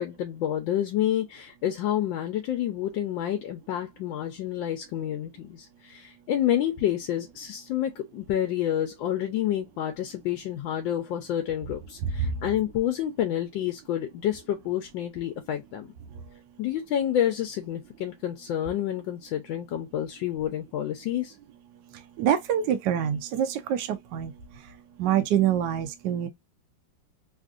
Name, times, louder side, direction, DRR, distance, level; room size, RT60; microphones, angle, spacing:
voice 1, 0.0-15.9 16.6-21.3, left 11 dB, 80° left, 1.3 m, -29 dB
voice 2, 22.2-24.3 25.0-26.3, right 10 dB, 75° right, 1.1 m, -25 dB
3.5 x 2.5 x 2.4 m
omnidirectional pair, 2.1 m